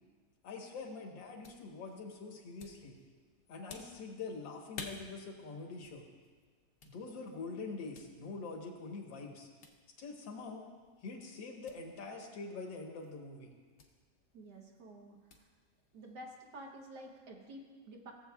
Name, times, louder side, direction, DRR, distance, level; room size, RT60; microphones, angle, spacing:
voice 1, 0.4-3.0 3.5-6.1 6.8-9.5 10.0-10.6 11.0-13.5, left 4 dB, 85° left, 1 dB, 1.9 m, -44 dB
sound 1, 0.6-16.2, left 4 dB, 55° left, 1.0 m, -57 dB
voice 2, 14.3-15.5 15.9-18.1, right 1 dB, 65° right, 1 dB, 1.6 m, -50 dB
16.5 x 7.5 x 2.3 m, 1.5 s
omnidirectional pair, 2.0 m